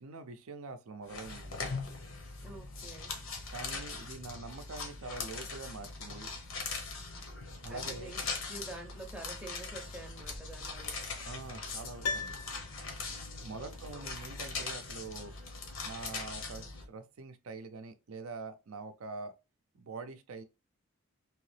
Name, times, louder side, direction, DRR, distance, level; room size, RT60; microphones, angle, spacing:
voice 1, 0.0-1.7 3.5-6.3 7.6-8.1 11.2-12.4 13.4-15.3 15.8-19.3 19.8-20.4, right 3 dB, 70° right, 0.5 m, -44 dB
sound 1, 1.1-16.9, left 4 dB, 60° left, 0.9 m, -41 dB
voice 2, 2.4-3.1 7.7-11.0 13.5-14.1, right 2 dB, 5° right, 0.6 m, -48 dB
Piano, 12.0-13.3 13.6-13.7, left 4 dB, 90° left, 0.5 m, -38 dB
3.0 x 2.8 x 3.1 m
head